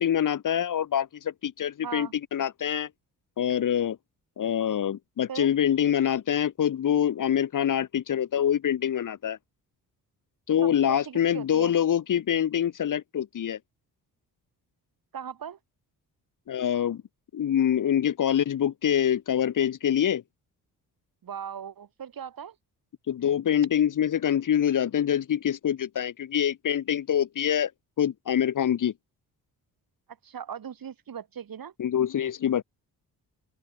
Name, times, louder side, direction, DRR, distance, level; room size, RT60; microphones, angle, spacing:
voice 1, 0.0-2.9 3.4-4.0 4.4-9.4 10.5-13.6 16.5-17.0 17.3-20.2 23.1-27.7 28.0-28.9 31.8-32.6, left 9 dB, 50° left, 0.9 m, -25 dB
voice 2, 10.6-11.7 15.1-15.6 21.2-22.5 30.2-31.7, right 8 dB, 55° right, 3.0 m, -38 dB
open air
supercardioid pair, 60°, 41 cm